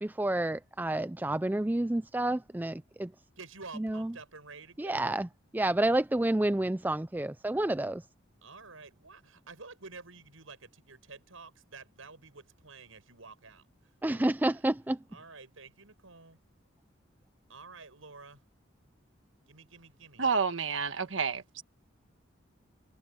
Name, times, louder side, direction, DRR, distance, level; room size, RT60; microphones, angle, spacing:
voice 1, 0.0-3.1 3.8-4.1 4.8-5.3 5.5-8.0 14.0-15.0, right 1 dB, 10° right, 0.3 m, -29 dB
voice 2, 3.4-5.3 8.4-14.6 15.1-16.4 17.5-18.4 19.5-20.3, right 4 dB, 85° right, 7.2 m, -50 dB
voice 3, 20.2-21.6, right 5 dB, 70° right, 1.4 m, -29 dB
head